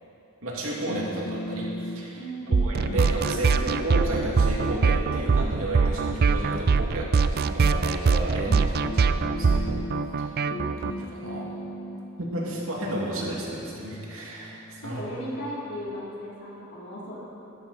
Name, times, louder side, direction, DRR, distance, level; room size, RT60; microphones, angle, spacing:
voice 1, 0.4-2.2 2.5-9.8 10.2-10.3 10.8-11.5 12.2-15.0, right 1 dB, 80° right, -4 dB, 2.7 m, -32 dB
sound 1, 0.9-2.2 2.5-4.1 4.5-7.0 7.9-8.0 8.5-16.0, left 1 dB, 85° left, 1.3 m, -38 dB
voice 2, 2.2-2.7 14.8-17.2, equal, 55° left, -7 dB, 3.6 m, -36 dB
sound 2, 2.5-10.9, right 4 dB, 50° right, 0.4 m, -23 dB
15.0 x 12.5 x 4.4 m, 2.9 s
head